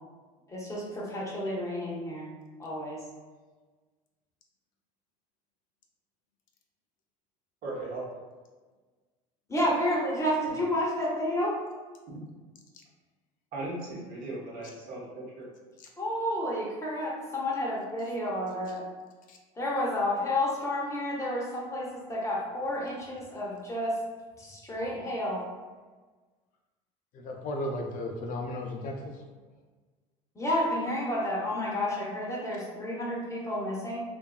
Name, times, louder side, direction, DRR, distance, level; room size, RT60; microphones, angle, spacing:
voice 1, 0.5-2.3 2.6-3.0 9.5-11.6 16.0-18.8 19.6-23.9 24.4-25.4 30.4-34.0, left 1 dB, 15° left, -4 dB, 0.7 m, -30 dB
voice 2, 7.6-8.0 12.1-12.2 13.5-15.5, right 2 dB, 55° right, -5 dB, 1.0 m, -37 dB
voice 3, 27.1-29.2, left 1 dB, 50° left, 1 dB, 0.4 m, -35 dB
2.6 x 2.3 x 2.3 m, 1.3 s
supercardioid pair, 100°, 18 cm